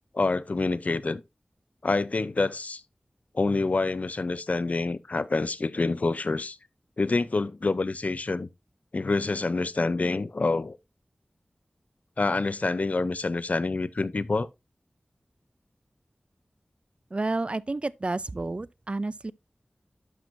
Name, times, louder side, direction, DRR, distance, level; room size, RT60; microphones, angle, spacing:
voice 1, 0.1-1.2 1.8-2.8 3.3-6.6 7.0-8.5 8.9-10.8 12.2-14.5, left 3 dB, 55° left, 0.5 m, -27 dB
voice 2, 17.1-19.3, right 2 dB, 40° right, 0.4 m, -30 dB
11.0 x 6.0 x 2.6 m
wide cardioid pair, 60°, 3 cm